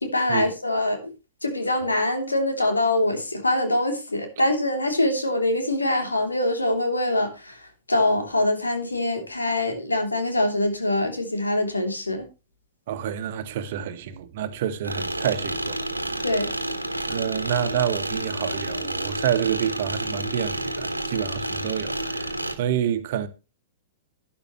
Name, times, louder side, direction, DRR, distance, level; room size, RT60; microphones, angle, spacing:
voice 1, 0.0-1.1 1.4-12.3 16.2-16.5 16.9-17.0, left 1 dB, 80° left, 3.2 m, -24 dB
voice 2, 12.9-15.8 17.1-23.3, right 9 dB, 50° right, 1.4 m, -28 dB
sound 1, 14.8-22.6, right 1 dB, 90° right, 1.5 m, -30 dB
12.0 x 11.0 x 3.1 m
figure-of-eight pair, 105°, 0 cm